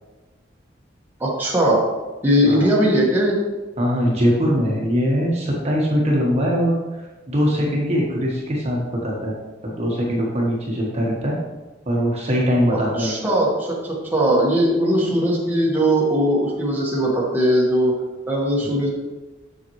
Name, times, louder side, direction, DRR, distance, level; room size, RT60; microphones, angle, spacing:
voice 1, 1.2-1.8 2.2-3.4 12.7-17.9 18.3-18.9, equal, 10° right, -5 dB, 1.5 m, -19 dB
voice 2, 3.8-7.0 7.3-9.4 9.6-11.4 11.9-13.1, equal, 35° right, -3 dB, 1.3 m, -21 dB
7.2 x 6.9 x 3.1 m, 1.2 s
head